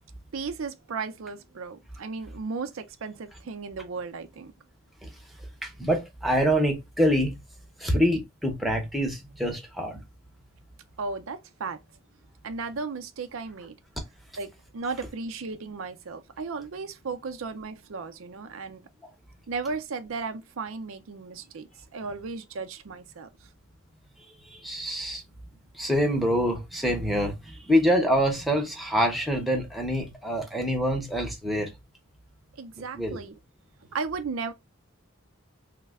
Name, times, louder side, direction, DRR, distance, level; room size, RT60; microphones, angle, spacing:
voice 1, 0.3-4.5 11.0-11.8 12.4-13.7 14.4-18.8 19.5-23.3 32.6-33.3 33.9-34.5, right 4 dB, 85° right, 0.5 m, -35 dB
voice 2, 5.6-7.4 7.8-10.0 24.5-25.2 25.7-31.7 32.9-33.2, equal, ahead, 0.7 m, -25 dB
3.2 x 2.1 x 3.4 m
head